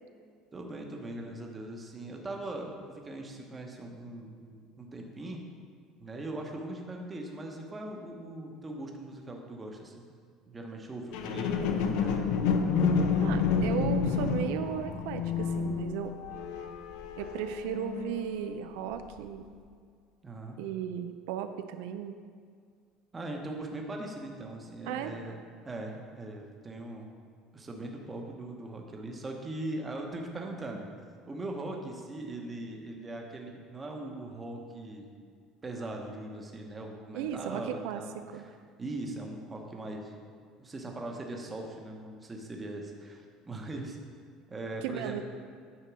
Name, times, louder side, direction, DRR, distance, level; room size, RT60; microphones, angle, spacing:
voice 1, 0.5-5.4 6.0-10.0 10.5-12.3 20.2-20.6 23.1-25.4 25.6-27.1 27.5-30.8 31.3-35.1 35.6-38.4 38.8-40.2 40.6-44.0 44.5-45.2, right 2 dB, 15° right, 1 dB, 0.9 m, -40 dB
sound 1, 11.1-18.6 19.1-19.2, left 5 dB, 70° left, 0.7 m, -29 dB
voice 2, 13.2-16.2 17.2-19.4 20.6-22.2 24.9-25.1 37.1-38.5 44.8-45.2, right 9 dB, 85° right, 8 dB, 0.5 m, -36 dB
10.0 x 4.5 x 6.1 m, 2.1 s
cardioid pair, 170°, 0 cm